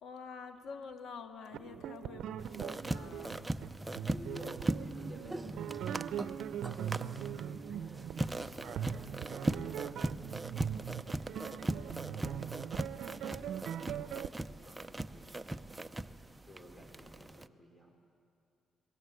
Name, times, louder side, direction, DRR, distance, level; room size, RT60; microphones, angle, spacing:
voice 1, 0.0-3.6, left 5 dB, 70° left, 6 dB, 2.0 m, -48 dB
sound 1, 1.5-14.3, right 9 dB, 75° right, 0.7 m, -41 dB
sound 2, 2.4-17.5, right 1 dB, 15° right, 0.7 m, -39 dB
voice 2, 4.0-5.8 6.6-10.9 11.4-11.8 12.2-12.7 13.0-14.3 14.6-15.6 16.4-18.0, equal, 15° left, 2 dB, 4.2 m, -54 dB
29.0 x 21.0 x 8.2 m, 2.4 s
cardioid pair, 90°, 0 cm